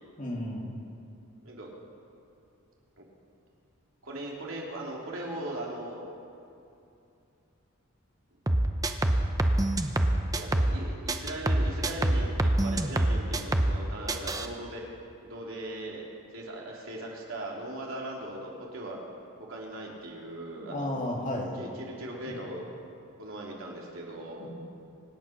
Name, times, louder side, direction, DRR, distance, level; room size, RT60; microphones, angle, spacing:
voice 1, 0.2-0.7 20.6-21.5 24.4-24.5, left 1 dB, 35° left, -1 dB, 2.6 m, -33 dB
voice 2, 4.0-6.0 10.3-14.8 15.2-16.1 16.3-19.0 19.5-20.9 21.6-22.7 23.2-24.5, right 1 dB, 70° right, -3 dB, 3.3 m, -39 dB
sound 1, 8.5-10.8 11.1-13.8 14.1-14.5, right 1 dB, 15° right, 0.7 m, -25 dB
25.5 x 9.4 x 6.0 m, 2.7 s
head